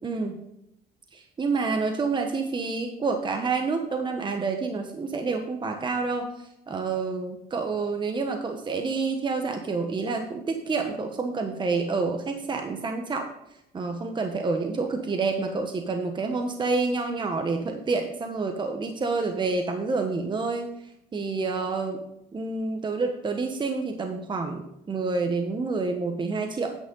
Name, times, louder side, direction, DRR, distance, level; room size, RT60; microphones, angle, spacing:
voice 1, 0.0-0.4 1.1-13.3 13.7-20.7 21.1-22.0 22.3-26.8, right 4 dB, 25° right, 4 dB, 1.2 m, -28 dB
9.4 x 8.2 x 3.9 m, 0.82 s
cardioid pair, 110°, 17 cm